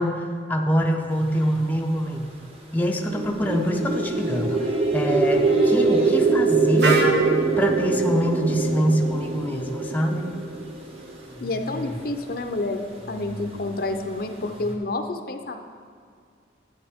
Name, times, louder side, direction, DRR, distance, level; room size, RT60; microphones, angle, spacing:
voice 1, 0.0-2.3 2.7-7.0 7.6-10.3, equal, 10° left, 1 dB, 0.5 m, -25 dB
sound 1, 1.1-14.8, left 2 dB, 30° right, 1.2 m, -39 dB
sound 2, 2.9-11.1, right 4 dB, 50° right, 0.5 m, -23 dB
Wind instrument woodwind instrument, 6.8-10.7, right 1 dB, 70° right, 1.0 m, -29 dB
voice 2, 11.4-15.6, left 2 dB, 55° left, 6 dB, 0.6 m, -29 dB
11.0 x 9.4 x 3.6 m, 2.2 s
head